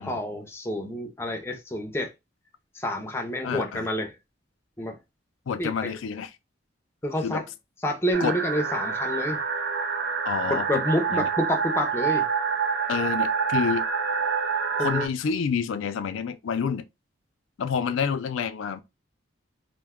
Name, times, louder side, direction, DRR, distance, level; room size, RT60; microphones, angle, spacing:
voice 1, 0.0-2.1 2.7-4.2 4.8-5.0 5.6-5.9 7.0-7.4 7.8-9.4 10.5-12.3 14.7-15.1, left 1 dB, 15° left, 0.5 m, -28 dB
voice 2, 3.4-3.9 5.5-6.3 7.2-7.4 8.2-8.4 10.2-10.8 11.1-11.3 12.9-13.9 14.8-16.9 17.6-18.8, left 6 dB, 85° left, 0.4 m, -28 dB
sound 1, 8.1-15.1, right 6 dB, 55° right, 0.4 m, -27 dB
2.6 x 2.2 x 3.5 m
head